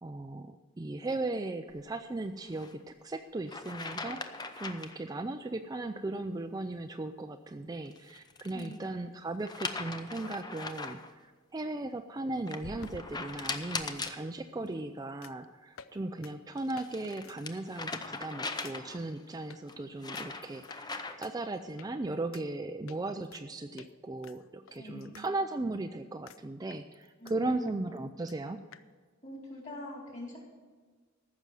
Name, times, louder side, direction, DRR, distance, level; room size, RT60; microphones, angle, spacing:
voice 1, 0.0-4.2 4.6-28.6, right 2 dB, 20° right, 7 dB, 0.4 m, -37 dB
sound 1, 2.5-2.7 3.5-5.0 7.8-8.8 9.4-11.1 12.5-14.2 16.3-19.1 19.7-21.3, left 3 dB, 20° left, 0.6 m, -40 dB
voice 2, 8.5-8.8 14.6-14.7 24.7-25.2 27.2-27.8 29.2-30.4, left 1 dB, 35° left, -3 dB, 3.9 m, -44 dB
sound 2, 12.6-13.9 15.2-15.4 15.8-16.0 16.2-16.3 16.8-16.9 17.2-17.4 17.8-18.0 18.6-18.8 19.5-19.6 20.1-20.8 21.2-21.3 21.8-21.9 22.3-22.4 22.9-23.4 23.8-23.9 24.2-25.3 25.6-25.7 26.3-26.4 26.7-27.3 27.7-27.8 28.0-28.1 28.3-28.4 28.7-28.8, left 6 dB, 75° left, 0.5 m, -51 dB
14.5 x 6.2 x 7.6 m, 1.4 s
head